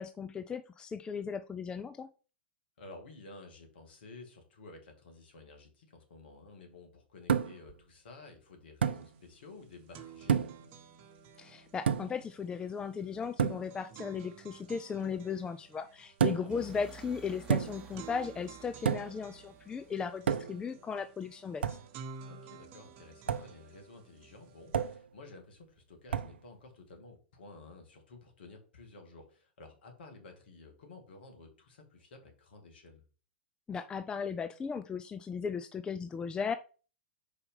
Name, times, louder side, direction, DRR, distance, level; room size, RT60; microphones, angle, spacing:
voice 1, 0.0-2.1 11.4-21.8 33.7-36.5, left 6 dB, 15° left, 11 dB, 0.4 m, -37 dB
voice 2, 2.8-10.5 16.4-16.7 22.2-33.0, left 3 dB, 60° left, 4 dB, 2.2 m, -53 dB
sound 1, 7.3-7.7 8.8-9.1 10.3-10.7 11.9-12.2 13.4-13.7 16.2-16.6 17.5-17.9 18.9-19.2 20.3-20.7 21.6-21.9 23.3-23.5 24.7-25.1 26.1-26.4, right 7 dB, 70° right, 0.5 m, -30 dB
sound 2, 9.0-9.1 9.4-25.0, right 6 dB, 40° right, 1.0 m, -53 dB
sound 3, 16.5-20.4, right 5 dB, 10° right, 1.4 m, -53 dB
5.0 x 4.4 x 5.3 m, 0.36 s
figure-of-eight pair, 100°, 6 cm